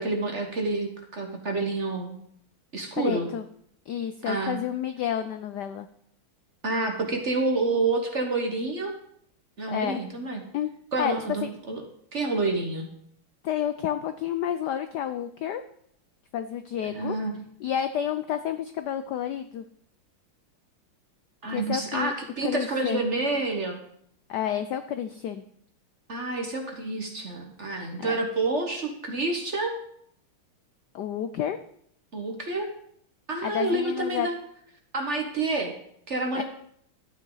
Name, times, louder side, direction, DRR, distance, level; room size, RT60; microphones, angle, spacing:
voice 1, 0.0-2.2 2.7-3.3 4.3-4.6 6.6-8.9 9.6-10.4 10.9-11.8 12.1-12.9 16.8-17.4 21.4-23.8 26.1-29.7 32.1-32.7 33.3-34.3 34.9-35.7 36.1-36.4, right 3 dB, 40° right, 3 dB, 1.3 m, -28 dB
voice 2, 3.0-3.4 3.9-5.9 9.7-10.0 10.5-10.7 11.0-11.2 11.4-11.5 13.4-15.6 16.3-17.2 17.6-19.7 21.5-22.1 22.4-23.1 24.3-25.4 28.0-28.2 30.9-31.6 33.4-34.3 36.3-36.4, left 9 dB, 80° left, 10 dB, 0.9 m, -30 dB
12.5 x 9.1 x 3.9 m, 0.69 s
omnidirectional pair, 2.4 m